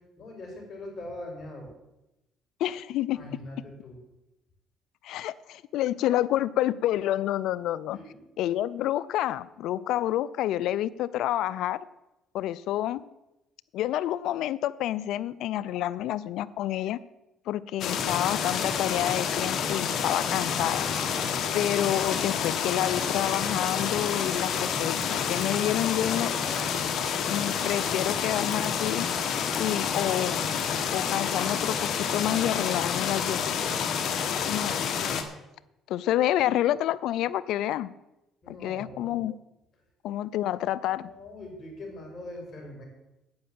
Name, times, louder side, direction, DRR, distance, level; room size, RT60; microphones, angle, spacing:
voice 1, 0.2-1.7 3.1-4.0 7.9-8.2 38.4-39.2 40.8-42.9, left 1 dB, 40° left, 1 dB, 4.8 m, -42 dB
voice 2, 2.6-3.2 5.0-8.0 8.4-11.9 12.3-13.0 13.7-17.0 17.5-20.9 21.5-26.3 27.3-29.1 29.6-30.4 30.9-33.4 34.4-34.8 35.9-37.9 38.5-39.4 40.0-41.1, left 13 dB, 75° left, 18 dB, 0.5 m, -28 dB
sound 1, 17.8-35.2, left 7 dB, 60° left, 1.5 m, -29 dB
9.6 x 8.7 x 7.6 m, 0.94 s
cardioid pair, 90°, 0 cm